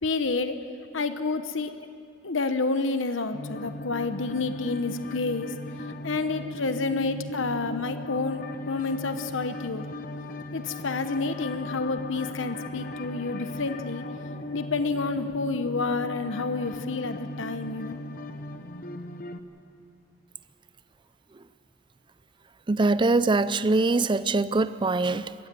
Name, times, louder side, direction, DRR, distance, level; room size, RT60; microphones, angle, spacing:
voice 1, 0.0-0.5 0.9-1.8 2.2-5.5 6.0-9.8 10.5-14.0 14.5-18.0, left 3 dB, 80° left, 9 dB, 1.0 m, -29 dB
sound 1, 3.3-19.4, left 2 dB, 45° left, 1.0 m, -37 dB
voice 2, 22.7-25.5, right 3 dB, 25° right, 14 dB, 0.5 m, -23 dB
22.0 x 15.5 x 9.3 m, 2.4 s
head